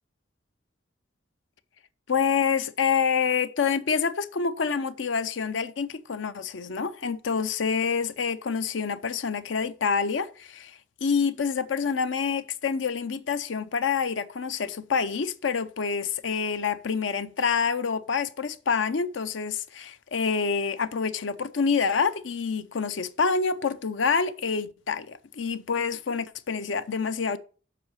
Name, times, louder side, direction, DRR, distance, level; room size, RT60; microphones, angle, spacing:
voice 1, 2.1-27.4, left 5 dB, 85° left, 0.6 m, -27 dB
7.7 x 5.5 x 6.4 m
head